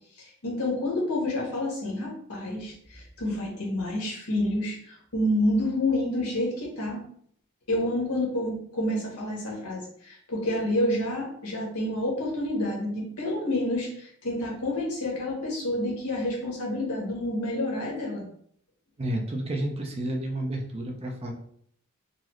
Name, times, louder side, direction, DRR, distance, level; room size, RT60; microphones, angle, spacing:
voice 1, 0.1-7.0 7.7-18.2, left 1 dB, 80° left, -2 dB, 1.3 m, -29 dB
voice 2, 19.0-21.3, right 1 dB, 25° right, 1 dB, 0.5 m, -31 dB
3.9 x 2.0 x 3.0 m, 0.64 s
head